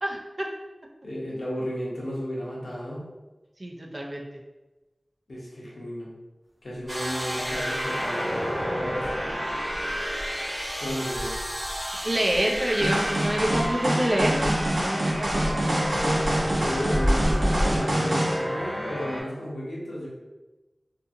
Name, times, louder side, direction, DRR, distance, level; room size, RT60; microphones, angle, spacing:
voice 1, 0.0-0.5 3.6-4.2 12.0-15.5, right 1 dB, 45° right, -1 dB, 0.5 m, -27 dB
voice 2, 1.0-3.0 5.3-6.1 6.6-9.2 10.8-11.4 16.6-20.1, equal, 80° left, -5 dB, 0.8 m, -33 dB
sound 1, 6.8-6.9 7.4-8.1 8.5-17.8, equal, 10° left, 0.5 m, -32 dB
sound 2, 6.9-19.2, equal, 15° right, 1.1 m, -31 dB
sound 3, 12.8-18.4, right 1 dB, 80° right, 0.7 m, -26 dB
2.6 x 2.5 x 2.6 m, 1.1 s
wide cardioid pair, 60°, 0 cm